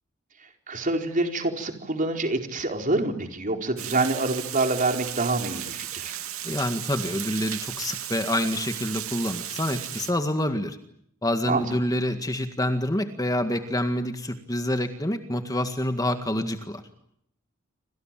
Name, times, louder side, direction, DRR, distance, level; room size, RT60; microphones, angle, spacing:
voice 1, 0.7-6.1 11.4-11.6, right 2 dB, 40° right, 4 dB, 4.4 m, -26 dB
Water, 3.8-10.1, right 12 dB, 80° right, 2.6 m, -35 dB
voice 2, 6.4-10.8 11.2-16.8, left 1 dB, 20° left, 7 dB, 1.9 m, -27 dB
28.0 x 26.5 x 7.6 m, 0.72 s
head